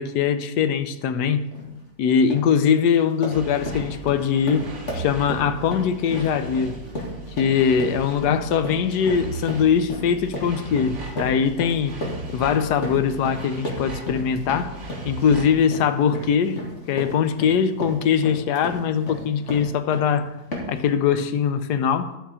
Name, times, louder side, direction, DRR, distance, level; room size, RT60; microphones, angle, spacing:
voice 1, 0.0-1.4 2.0-4.7 4.9-6.8 7.4-11.9 12.3-14.8 15.0-16.6 16.9-20.3 20.7-22.1, left 7 dB, 80° left, 1.2 m, -21 dB
sound 1, 1.5-1.7 2.1-2.5 2.9-20.1 20.5-20.9, left 1 dB, 45° left, 2.3 m, -34 dB
sound 2, 3.3-15.6, right 4 dB, 45° right, 1.9 m, -38 dB
11.5 x 5.9 x 4.8 m
omnidirectional pair, 1.8 m